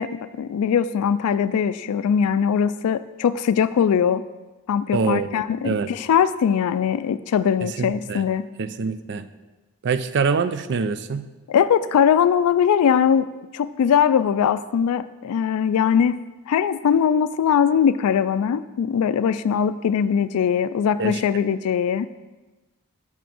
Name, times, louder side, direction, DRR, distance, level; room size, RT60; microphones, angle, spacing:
voice 1, 0.0-4.2 4.7-8.5 11.5-13.3 13.5-16.2 16.5-22.1, left 7 dB, 80° left, 14 dB, 0.3 m, -21 dB
voice 2, 4.9-5.9 7.6-8.2 8.6-9.3 9.8-11.3 21.0-21.2, right 5 dB, 50° right, 12 dB, 0.4 m, -25 dB
6.1 x 5.9 x 7.0 m, 1.2 s
head